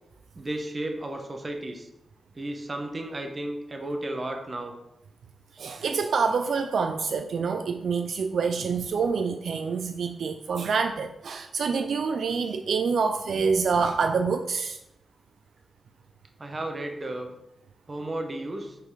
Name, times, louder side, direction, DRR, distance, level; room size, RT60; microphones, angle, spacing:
voice 1, 0.3-1.9 2.3-4.7 16.4-17.3 17.9-18.8, right 1 dB, 30° right, 4 dB, 0.9 m, -33 dB
voice 2, 5.5-14.8, right 5 dB, 75° right, 6 dB, 0.4 m, -26 dB
5.6 x 4.0 x 4.7 m, 0.86 s
wide cardioid pair, 125°, 0 cm